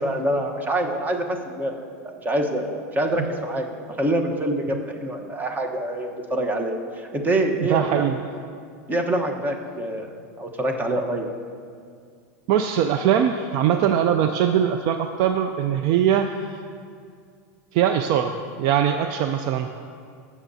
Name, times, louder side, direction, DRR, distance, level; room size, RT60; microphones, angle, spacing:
voice 1, 0.0-1.7 2.0-3.7 4.0-8.2 8.9-11.3, right 1 dB, 20° right, 4 dB, 1.1 m, -25 dB
voice 2, 7.6-8.2 12.5-16.6 17.7-19.7, right 9 dB, 50° right, 7 dB, 0.4 m, -21 dB
16.5 x 7.2 x 2.7 m, 2.2 s
hypercardioid pair, 110°, 9 cm